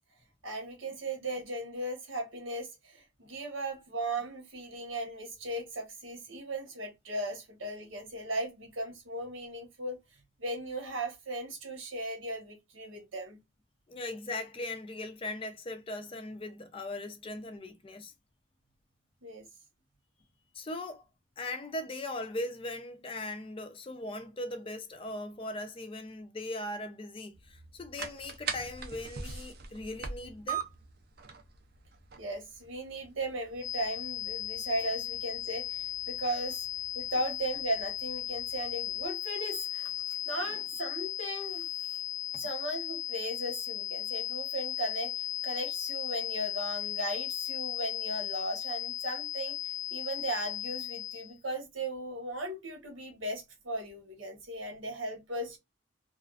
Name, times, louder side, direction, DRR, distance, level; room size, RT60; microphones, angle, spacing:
voice 1, 0.4-10.0 10.4-13.4 19.2-19.5 32.2-36.7 36.9-41.7 42.4-49.6 49.9-55.6, right 1 dB, 85° right, 1.1 m, -37 dB
voice 2, 13.9-18.1 20.5-21.0 21.4-30.6 40.4-40.6, left 2 dB, 25° left, 0.4 m, -39 dB
sound 1, 27.3-39.1, right 6 dB, 50° right, 0.4 m, -44 dB
sound 2, 33.6-51.3, left 11 dB, 85° left, 0.5 m, -36 dB
2.4 x 2.3 x 2.3 m
head